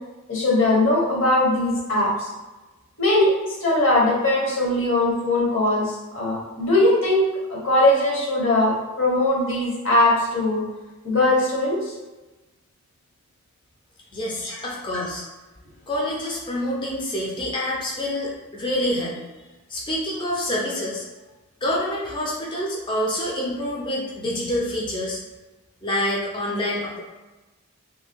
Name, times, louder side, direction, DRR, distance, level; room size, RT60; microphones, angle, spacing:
voice 1, 0.3-2.3 3.0-3.3 3.6-7.2 7.5-10.6 11.0-11.9 14.4-14.6, left 1 dB, 55° left, -4 dB, 0.9 m, -20 dB
voice 2, 14.1-15.2 15.9-19.2 19.7-21.0 21.6-25.2 25.8-27.0, left 1 dB, 20° left, -5 dB, 0.5 m, -27 dB
2.7 x 2.2 x 3.4 m, 1.1 s
head